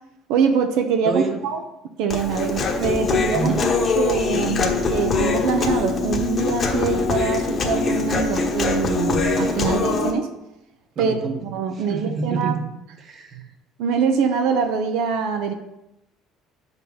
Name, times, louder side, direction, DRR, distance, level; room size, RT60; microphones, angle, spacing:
voice 1, 0.3-1.6 2.0-3.5 3.9-10.3 11.0-12.5 13.8-15.5, right 6 dB, 75° right, 5 dB, 0.8 m, -24 dB
voice 2, 1.0-1.4 3.3-3.7 11.0-12.6 13.0-13.4, right 4 dB, 35° right, 5 dB, 1.1 m, -28 dB
Human voice, 2.1-10.1, left 4 dB, 30° left, 1.1 m, -23 dB
7.4 x 5.4 x 5.5 m, 0.87 s
cardioid pair, 145°, 0 cm